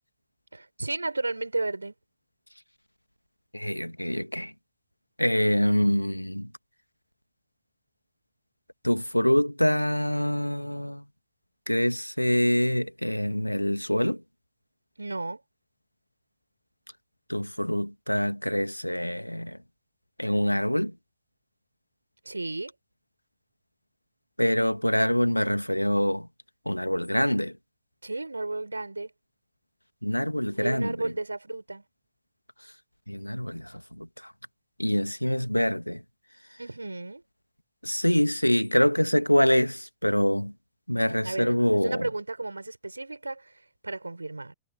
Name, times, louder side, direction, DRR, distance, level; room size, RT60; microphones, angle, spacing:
voice 1, 0.5-1.9 15.0-15.4 22.3-22.7 28.0-29.1 30.6-31.8 36.6-37.2 41.2-44.5, right 2 dB, 85° right, 5.4 m, -33 dB
voice 2, 3.5-4.5 5.2-6.5 8.8-11.0 11.7-14.2 17.3-19.6 20.2-20.9 24.4-26.3 26.7-27.5 30.0-31.1 33.1-34.1 34.8-36.0 37.8-40.5 40.9-42.1, equal, 90° left, 2.1 m, -25 dB
figure-of-eight pair, 90°, 0 cm